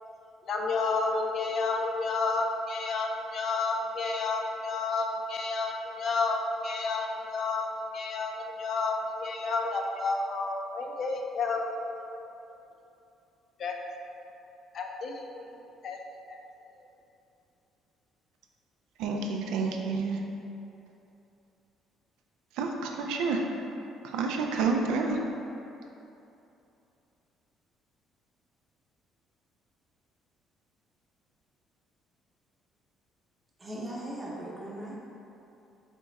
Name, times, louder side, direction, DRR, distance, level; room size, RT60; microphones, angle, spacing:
voice 1, 0.4-12.2 13.6-13.8 14.0-14.2 14.7-16.0 16.3-16.4 16.8-16.9, left 3 dB, 50° left, 2 dB, 0.4 m, -31 dB
voice 2, 19.0-20.2 22.6-23.4 24.0-25.2, right 4 dB, 90° right, 2 dB, 0.4 m, -29 dB
voice 3, 33.6-35.0, right 1 dB, 20° right, -4 dB, 0.8 m, -38 dB
4.3 x 2.4 x 4.0 m, 2.8 s
cardioid pair, 120°, 0 cm